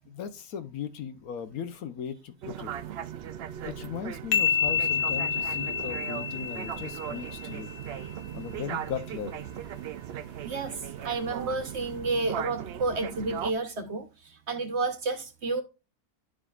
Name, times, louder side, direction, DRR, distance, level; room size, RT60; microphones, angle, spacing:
voice 1, 0.1-2.7 3.6-7.7 8.1-9.5, left 8 dB, 70° left, 1.2 m, -38 dB
sound 1, 2.4-13.5, right 10 dB, 75° right, 0.5 m, -38 dB
sound 2, 4.3-7.9, left 7 dB, 90° left, 1.2 m, -29 dB
voice 2, 10.4-15.6, right 3 dB, 50° right, 1.1 m, -31 dB
11.5 x 5.0 x 2.4 m
omnidirectional pair, 1.6 m